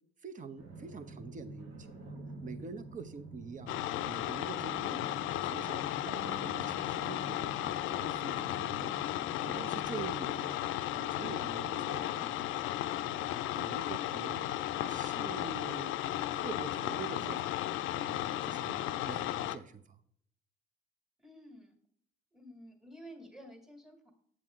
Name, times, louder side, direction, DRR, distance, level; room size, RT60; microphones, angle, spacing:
voice 1, 0.2-3.8 4.0-9.1 9.4-10.6 10.9-12.6 13.0-14.5 14.8-16.0 16.3-17.5 17.9-20.0, right 5 dB, 40° right, 10 dB, 0.8 m, -46 dB
sound 1, 0.6-10.1, right 2 dB, 90° right, 1.6 m, -48 dB
sound 2, 3.7-19.6, left 13 dB, 85° left, 0.4 m, -35 dB
voice 2, 21.2-21.8 22.3-24.1, equal, ahead, 4 dB, 1.7 m, -51 dB
7.7 x 7.5 x 3.6 m, 0.65 s
cardioid pair, 90°, 20 cm